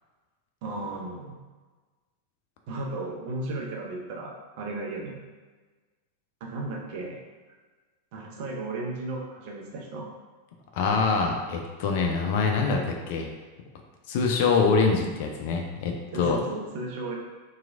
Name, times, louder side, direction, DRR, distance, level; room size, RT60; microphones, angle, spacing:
voice 1, 0.6-1.4 2.7-5.2 6.4-7.2 8.1-10.1 16.1-17.2, right 2 dB, 45° right, -1 dB, 0.5 m, -35 dB
voice 2, 10.7-13.3 14.1-16.4, left 4 dB, 50° left, 3 dB, 0.3 m, -24 dB
2.9 x 2.3 x 2.4 m, 1.3 s
figure-of-eight pair, 90°, 0 cm